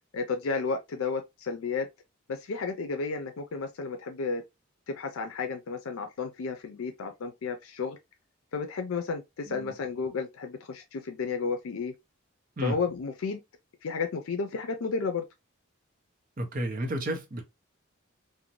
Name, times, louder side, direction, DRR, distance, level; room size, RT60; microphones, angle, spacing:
voice 1, 0.1-1.9 2.3-4.4 4.9-8.0 8.5-11.9 12.6-13.4 13.8-15.2, left 4 dB, 80° left, 0.4 m, -32 dB
voice 2, 16.4-17.4, right 1 dB, 40° right, 0.7 m, -31 dB
2.6 x 2.1 x 2.9 m
head